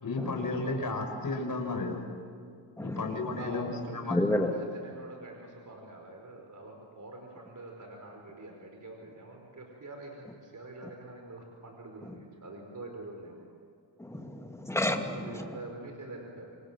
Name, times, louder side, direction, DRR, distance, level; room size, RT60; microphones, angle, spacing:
voice 1, 0.0-2.0 2.8-4.2, left 3 dB, 45° left, 3 dB, 5.7 m, -33 dB
voice 2, 2.8-3.1 4.1-4.5 12.0-12.1 14.0-15.4, left 1 dB, 5° left, 3 dB, 2.5 m, -31 dB
voice 3, 3.4-13.4 15.0-16.6, right 2 dB, 40° right, 2 dB, 4.8 m, -45 dB
28.0 x 27.0 x 7.5 m, 2.3 s
wide cardioid pair, 115°, 47 cm